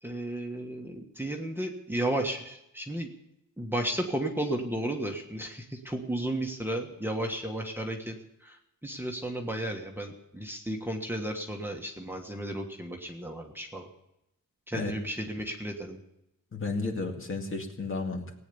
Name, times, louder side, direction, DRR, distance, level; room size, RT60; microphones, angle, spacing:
voice 1, 0.0-3.1 3.6-13.9 14.7-16.0, right 1 dB, 5° right, 1 dB, 1.5 m, -33 dB
voice 2, 16.5-18.3, left 3 dB, 40° left, 2 dB, 2.2 m, -33 dB
18.5 x 9.4 x 7.0 m, 0.84 s
wide cardioid pair, 140°, 34 cm